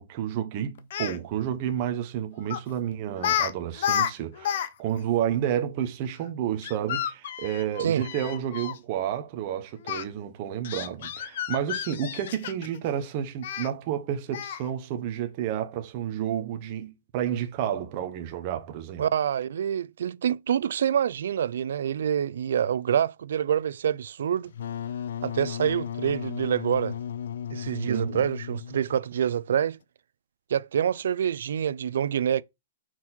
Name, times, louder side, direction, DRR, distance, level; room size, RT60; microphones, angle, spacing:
voice 1, 0.0-19.0 27.9-28.3, right 10 dB, 30° right, 1.1 m, -30 dB
Speech, 0.8-1.2 2.5-2.7 3.2-3.5 3.8-4.7 5.0-5.1 6.6-8.8 9.8-10.0 10.6-12.8 13.4-13.7 14.3-14.7, left 10 dB, 45° left, 0.7 m, -30 dB
voice 2, 19.0-24.5 25.2-27.0 27.5-29.8 30.5-32.4, right 9 dB, 65° right, 0.4 m, -26 dB
Wind instrument woodwind instrument, 24.5-29.1, left 9 dB, 65° left, 0.3 m, -35 dB
6.0 x 4.4 x 4.4 m
hypercardioid pair, 170°, 0 cm